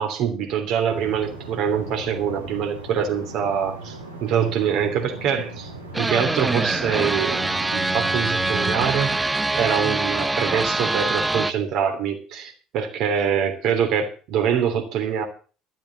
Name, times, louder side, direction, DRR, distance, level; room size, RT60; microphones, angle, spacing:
voice 1, 0.0-5.7 6.0-9.2 9.5-15.3, right 8 dB, 55° right, 4 dB, 3.1 m, -24 dB
sound 1, 0.9-8.9, right 2 dB, 85° right, 2.7 m, -38 dB
sound 2, 5.9-11.5, right 2 dB, 15° right, 0.7 m, -24 dB
12.5 x 7.7 x 7.3 m, 0.38 s
figure-of-eight pair, 55°, 0 cm